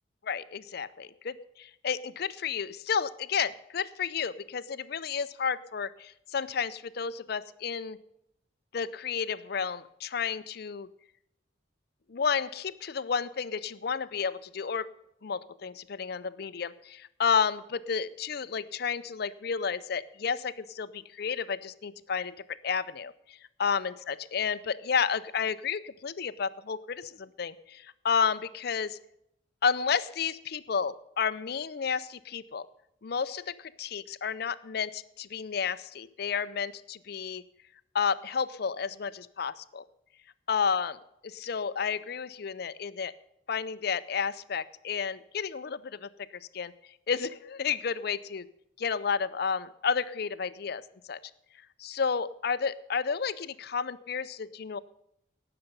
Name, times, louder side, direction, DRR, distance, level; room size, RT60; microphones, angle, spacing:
voice 1, 0.2-8.0 8.7-10.9 12.1-14.9 15.2-29.0 29.6-32.7 33.0-37.4 37.9-39.8 40.5-40.9 41.2-43.1 43.5-46.1 46.5-46.7 47.1-48.5 48.8-50.8 51.1-51.2 51.8-54.8, left 6 dB, 50° left, 15 dB, 0.5 m, -31 dB
18.0 x 6.8 x 5.3 m, 0.79 s
head